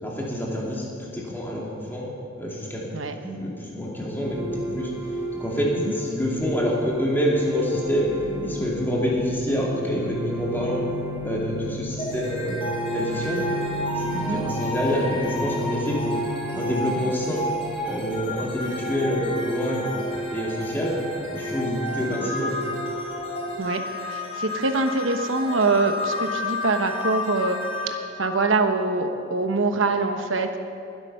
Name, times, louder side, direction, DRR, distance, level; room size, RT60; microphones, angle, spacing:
voice 1, 0.0-2.1 2.4-2.8 3.2-4.9 5.4-8.1 8.4-10.9 11.2-12.6 12.9-13.4 13.9-16.1 16.5-17.5 17.9-19.9 20.3-20.9 21.3-22.6, equal, 10° left, -4 dB, 2.6 m, -27 dB
sound 1, 4.2-23.6, right 1 dB, 10° right, 1.3 m, -33 dB
sound 2, 12.0-29.1, left 1 dB, 30° left, 3.3 m, -32 dB
voice 2, 24.1-30.6, right 3 dB, 70° right, 6 dB, 1.1 m, -24 dB
20.5 x 8.2 x 5.6 m, 2.5 s
head